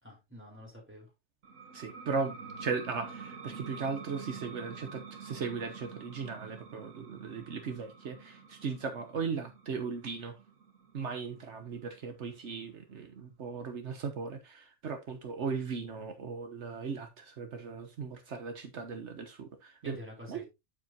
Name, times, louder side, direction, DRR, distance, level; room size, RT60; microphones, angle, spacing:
voice 1, 0.0-1.1 19.8-20.4, left 1 dB, 10° right, 3.8 m, -47 dB
sound 1, 1.4-12.7, right 5 dB, 90° right, 1.4 m, -48 dB
voice 2, 1.7-10.4 10.9-20.0 20.3-20.4, right 5 dB, 70° right, 1.3 m, -37 dB
8.7 x 7.5 x 2.8 m
omnidirectional pair, 1.2 m